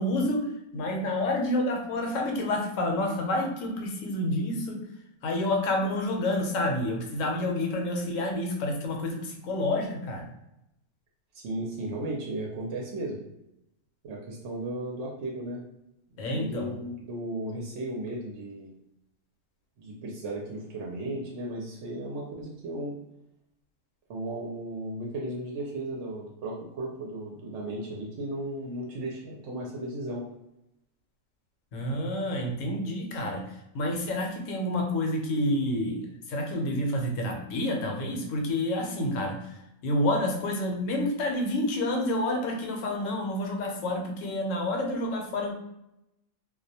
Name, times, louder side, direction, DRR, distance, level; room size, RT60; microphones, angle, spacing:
voice 1, 0.0-4.8 5.2-10.3 16.2-16.7 31.7-33.4 33.7-45.6, left 1 dB, 75° left, 1 dB, 1.0 m, -29 dB
voice 2, 11.3-13.2 14.0-15.6 16.3-18.7 19.8-23.0 24.1-30.3, right 1 dB, 65° right, -2 dB, 0.8 m, -35 dB
2.3 x 2.1 x 2.7 m, 0.86 s
omnidirectional pair, 1.4 m